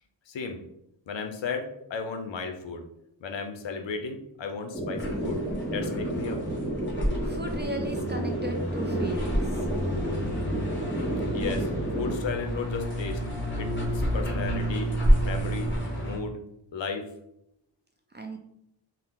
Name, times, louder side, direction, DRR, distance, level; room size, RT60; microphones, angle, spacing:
voice 1, 0.3-0.6 1.1-2.8 3.2-5.4 5.7-6.4 11.3-11.7 11.9-13.2 13.6-14.9 15.2-15.7 16.0-16.4 16.7-17.1, left 5 dB, 70° left, 5 dB, 0.6 m, -34 dB
sound 1, 4.7-12.1, right 1 dB, ahead, 0.7 m, -31 dB
sound 2, 4.9-16.2, equal, 25° left, 1.0 m, -30 dB
voice 2, 7.2-9.7 18.1-18.4, right 2 dB, 25° right, 3 dB, 0.4 m, -36 dB
2.8 x 2.1 x 3.5 m, 0.80 s
cardioid pair, 50°, 48 cm